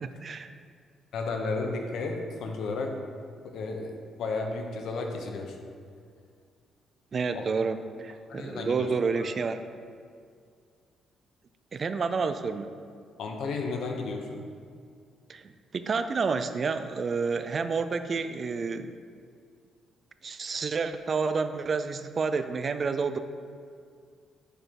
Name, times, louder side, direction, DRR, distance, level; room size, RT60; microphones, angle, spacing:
voice 1, 0.0-0.5 7.1-9.6 11.7-12.7 15.3-19.0 20.2-23.2, right 4 dB, 45° right, 10 dB, 0.4 m, -29 dB
voice 2, 1.1-3.0 3.4-5.6 7.3-7.4 8.3-8.9 9.1-9.3 13.2-14.4, left 3 dB, 75° left, 2 dB, 0.9 m, -33 dB
6.8 x 4.4 x 5.0 m, 2.2 s
cardioid pair, 90°, 0 cm